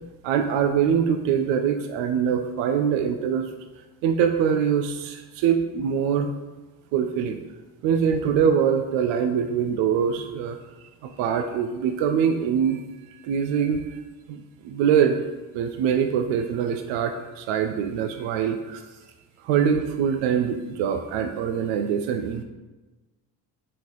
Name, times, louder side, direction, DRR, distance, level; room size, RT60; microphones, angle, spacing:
voice 1, 0.2-3.5 4.0-6.3 6.9-7.4 7.8-10.6 11.0-12.8 13.1-14.0 14.3-15.2 15.5-18.8 19.4-22.4, right 7 dB, 65° right, 6 dB, 0.5 m, -23 dB
4.1 x 3.7 x 3.1 m, 1.2 s
hypercardioid pair, 50°, 47 cm